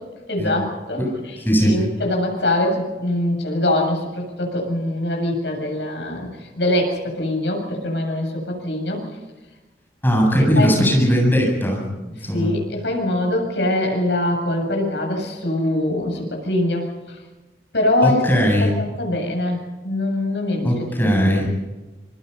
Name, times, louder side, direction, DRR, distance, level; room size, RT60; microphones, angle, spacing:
voice 1, 0.3-1.0 1.6-9.1 10.6-10.9 12.2-17.2 17.7-18.2 18.6-21.1, left 1 dB, 85° left, 2 dB, 7.8 m, -23 dB
voice 2, 1.4-1.8 10.0-12.5 18.0-18.7 20.6-21.5, equal, 10° left, 0 dB, 7.9 m, -19 dB
26.5 x 23.5 x 5.6 m, 1.2 s
head